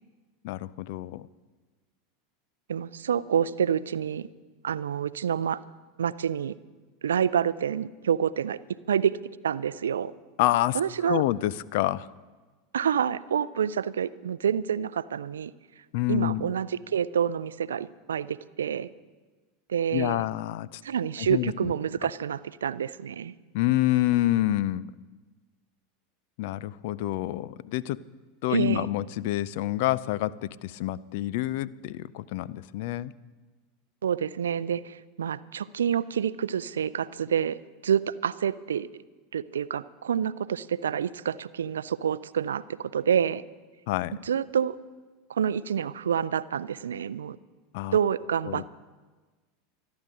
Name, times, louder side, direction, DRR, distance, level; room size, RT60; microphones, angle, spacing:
voice 1, 0.4-1.3 10.4-10.8 11.0-12.1 15.9-16.5 19.9-20.8 21.3-21.7 23.5-24.9 26.4-28.0 28.4-33.1 43.9-44.2 47.7-48.0 48.5-48.6, left 15 dB, 60° left, 19 dB, 0.5 m, -27 dB
voice 2, 2.7-4.3 4.6-5.6 6.0-6.5 7.0-8.6 8.9-9.1 9.4-10.1 10.7-11.2 12.7-15.5 16.1-18.9 19.7-20.2 20.8-23.3 28.5-28.9 34.0-37.6 37.8-38.9 39.3-43.4 44.2-44.8 45.3-47.4 47.9-48.7, right 8 dB, 75° right, 18 dB, 0.4 m, -28 dB
26.0 x 10.5 x 3.8 m, 1.3 s
figure-of-eight pair, 85°, 0 cm